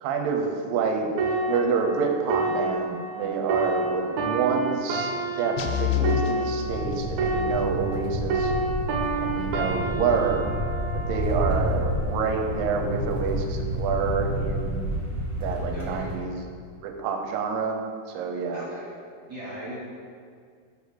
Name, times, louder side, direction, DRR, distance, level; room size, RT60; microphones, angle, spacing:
voice 1, 0.0-1.1 1.5-8.5 9.2-10.5 10.9-14.9 15.4-16.4 16.8-17.8 18.1-18.6, right 5 dB, 90° right, 3 dB, 2.3 m, -28 dB
sound 1, 1.2-8.0 8.3-11.9 12.5-12.7, right 3 dB, 70° right, 1.8 m, -29 dB
sound 2, 5.6-7.5, left 12 dB, 90° left, 2.3 m, -28 dB
sound 3, 6.6-16.2, equal, 70° left, 0.7 m, -30 dB
voice 2, 15.7-16.1 18.5-18.9 19.3-19.8, right 1 dB, 45° right, -9 dB, 1.9 m, -37 dB
5.2 x 4.8 x 6.3 m, 2.1 s
omnidirectional pair, 4.0 m